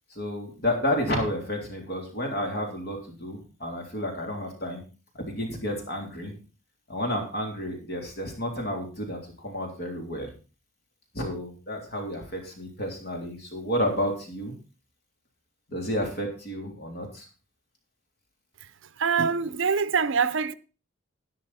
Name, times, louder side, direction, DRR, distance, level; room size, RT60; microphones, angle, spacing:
voice 1, 0.1-4.8 5.2-6.3 6.9-10.3 11.1-14.5 15.7-17.3, left 1 dB, 50° left, 3.4 m, -31 dB
voice 2, 19.0-20.5, right 5 dB, 65° right, 0.7 m, -24 dB
11.5 x 10.5 x 4.2 m
head